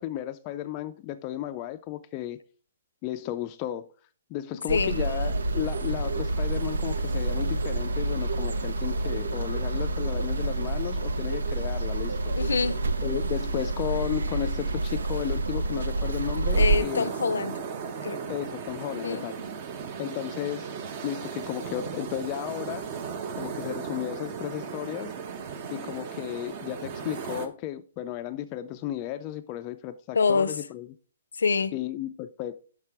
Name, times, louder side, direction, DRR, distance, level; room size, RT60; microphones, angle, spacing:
voice 1, 0.0-2.4 3.0-3.9 4.3-12.3 13.0-17.1 18.3-19.4 20.0-22.9 23.3-25.1 25.7-30.9 31.7-32.6, left 13 dB, 30° left, 0.4 m, -34 dB
voice 2, 4.7-5.0 12.4-12.8 16.5-17.6 18.0-18.2 18.9-19.2 30.1-30.6 31.3-31.8, left 5 dB, 85° left, 0.5 m, -26 dB
sound 1, 4.7-16.8, right 2 dB, 85° right, 0.7 m, -28 dB
sound 2, 16.5-27.5, right 6 dB, 35° right, 0.9 m, -36 dB
5.9 x 5.7 x 4.8 m
hypercardioid pair, 150°, 0 cm